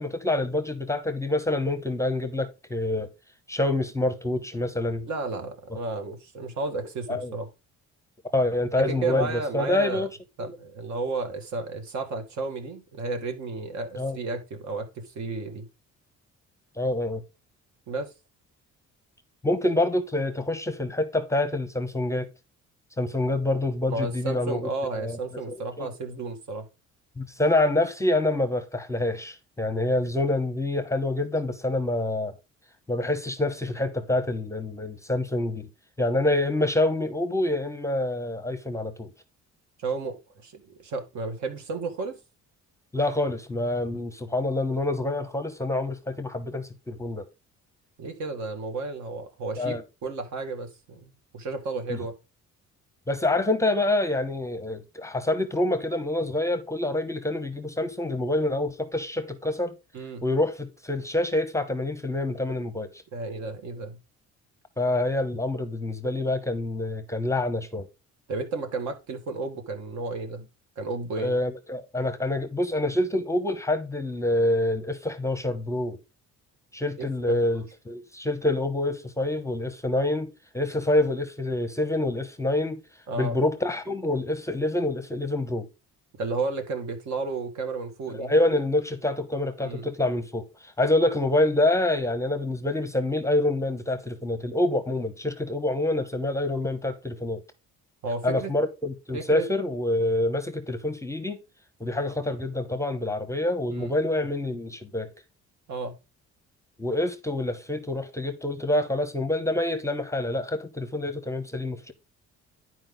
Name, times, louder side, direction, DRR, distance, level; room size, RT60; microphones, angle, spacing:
voice 1, 0.0-3.1 3.5-5.1 6.7-7.4 8.3-10.1 10.4-10.6 14.0-14.2 16.8-17.2 19.4-22.3 23.0-25.2 25.5-25.9 27.2-32.4 32.9-35.7 36.0-39.1 42.9-47.3 49.6-49.8 51.9-52.0 53.1-59.7 60.2-63.0 64.8-67.9 71.2-76.0 76.7-82.8 83.2-85.7 88.1-97.4 98.2-101.4 101.8-105.1 106.8-111.9, left 1 dB, 10° left, 0.7 m, -26 dB
voice 2, 5.1-7.5 8.8-10.1 10.4-15.7 17.9-18.1 23.9-26.7 39.8-42.2 48.0-52.1 59.9-60.2 63.1-64.0 68.3-70.5 70.8-71.4 77.0-77.4 83.1-83.4 86.2-88.3 89.6-89.9 98.0-98.5 99.1-99.5 103.8-103.9 105.7-106.0, right 3 dB, 70° right, 2.0 m, -32 dB
10.5 x 4.7 x 3.9 m
cardioid pair, 155°, 30 cm